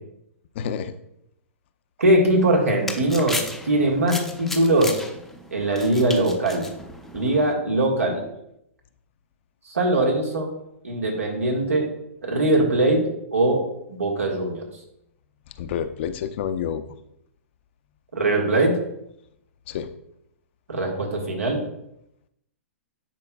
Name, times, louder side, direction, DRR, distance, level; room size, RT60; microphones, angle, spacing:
voice 1, 0.5-0.9 15.6-16.8 19.7-19.9, left 8 dB, 55° left, 11 dB, 0.5 m, -28 dB
voice 2, 2.0-5.0 5.5-6.7 7.1-8.2 9.7-10.5 10.8-11.9 12.2-14.7 18.1-18.8 20.7-21.6, right 1 dB, 85° right, 0 dB, 1.7 m, -21 dB
sound 1, 2.4-7.5, left 2 dB, 5° left, 0.6 m, -35 dB
10.0 x 4.4 x 2.4 m, 0.79 s
hypercardioid pair, 125°, 8 cm